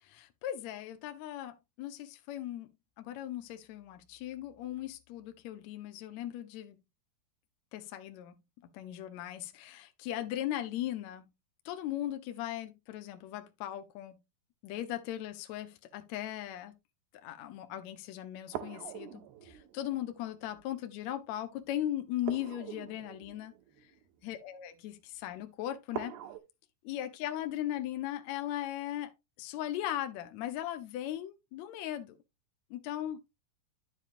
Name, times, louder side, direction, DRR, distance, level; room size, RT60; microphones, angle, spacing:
voice 1, 0.0-2.7 3.0-6.8 7.7-8.3 8.7-11.2 11.6-14.2 14.6-16.8 17.1-23.5 23.8-23.9 24.2-26.2 26.8-29.1 29.4-32.2 32.7-33.2, left 12 dB, 75° left, 1.6 m, -38 dB
sound 1, 18.5-20.7 22.2-24.5 25.9-26.4, right 11 dB, 85° right, 2.8 m, -44 dB
10.0 x 7.2 x 2.6 m
omnidirectional pair, 4.4 m